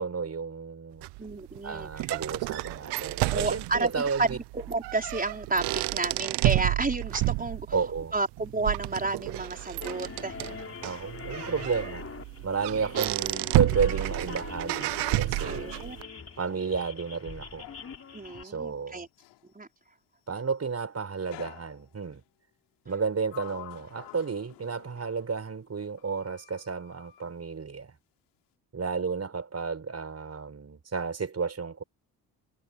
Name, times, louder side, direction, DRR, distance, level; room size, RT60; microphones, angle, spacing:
voice 1, 0.0-1.1 1.6-4.4 7.7-8.1 10.8-12.1 12.4-15.7 16.4-17.7 18.4-19.1 20.3-22.2 22.9-27.9 28.7-31.8, right 5 dB, 40° right, 5.7 m, -32 dB
sound 1, 1.0-16.0, right 21 dB, 80° right, 0.7 m, -31 dB
voice 2, 1.2-1.9 3.3-7.7 8.1-10.4 15.5-16.0 18.1-19.1 19.5-19.7, right 3 dB, 20° right, 5.1 m, -31 dB
sound 2, 9.8-18.4, left 5 dB, 35° left, 4.1 m, -43 dB
Sliding door, 15.5-19.5 21.3-22.2 22.9-25.7 26.0-27.3, left 17 dB, 85° left, 4.6 m, -51 dB
supercardioid pair, 65°, 40 cm